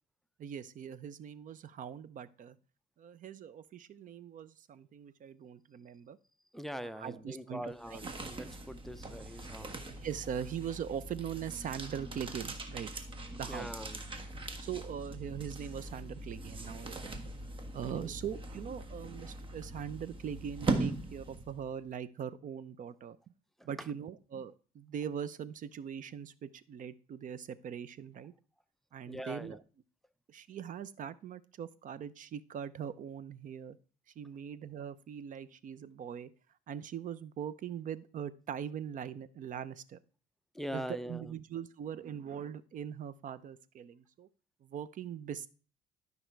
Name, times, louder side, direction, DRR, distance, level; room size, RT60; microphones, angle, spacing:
voice 1, 0.4-2.6 3.0-6.2 7.0-8.1 10.0-12.9 13.3-13.7 14.6-17.3 17.7-23.2 23.6-28.3 28.9-29.6 30.3-33.8 34.2-36.3 36.7-40.0 40.7-44.3 44.6-45.5, right 8 dB, 50° right, 16 dB, 0.7 m, -41 dB
voice 2, 6.5-9.8 13.4-14.0 17.8-18.1 23.6-23.9 29.1-29.6 40.5-41.3, equal, ahead, 14 dB, 0.5 m, -42 dB
sound 1, 7.7-21.7, right 2 dB, 30° right, 1.5 m, -40 dB
12.5 x 5.5 x 4.6 m, 0.38 s
cardioid pair, 110°, 17 cm